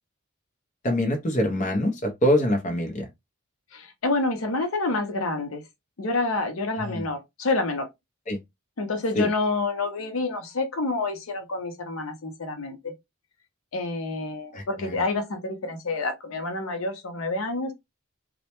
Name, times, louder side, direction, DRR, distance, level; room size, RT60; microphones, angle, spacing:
voice 1, 0.8-3.1 6.8-7.1 8.3-8.4 9.1-9.3 14.5-15.0, equal, 35° left, 0.5 m, -25 dB
voice 2, 3.7-5.6 6.0-7.9 8.8-12.9 13.7-17.7, left 3 dB, 80° left, 0.6 m, -28 dB
2.1 x 2.1 x 2.8 m
head